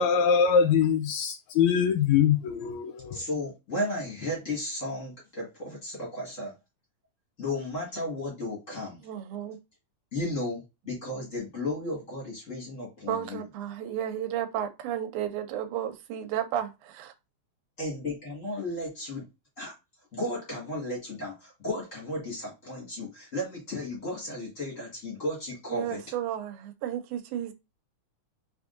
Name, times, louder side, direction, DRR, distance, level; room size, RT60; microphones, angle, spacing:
voice 1, 0.0-3.2, left 7 dB, 75° left, 1.8 m, -23 dB
voice 2, 3.1-6.5 7.4-9.0 10.1-13.4 17.8-19.2 19.6-19.7 20.1-26.0, left 1 dB, 35° left, 1.4 m, -34 dB
voice 3, 9.0-9.6 13.1-17.1 25.7-27.5, right 10 dB, 85° right, 2.1 m, -33 dB
4.8 x 3.5 x 2.5 m
omnidirectional pair, 3.5 m